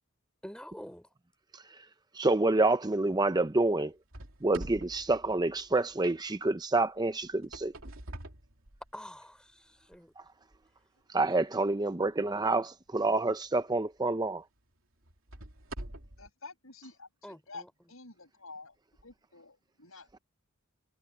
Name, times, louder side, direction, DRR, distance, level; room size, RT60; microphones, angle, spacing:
voice 1, 0.4-1.1 8.9-10.1 17.2-17.7, equal, 5° left, 4.9 m, -47 dB
voice 2, 2.1-3.9 4.4-7.7 11.1-14.4, right 2 dB, 20° right, 0.7 m, -28 dB
sound 1, 4.1-6.1 7.2-9.2 9.8-10.0 10.6-10.7 13.4-13.5 14.1-14.2 15.0-16.3, right 1 dB, 70° right, 3.1 m, -45 dB
voice 3, 16.2-18.8 19.0-20.1, left 3 dB, 75° left, 7.1 m, -49 dB
head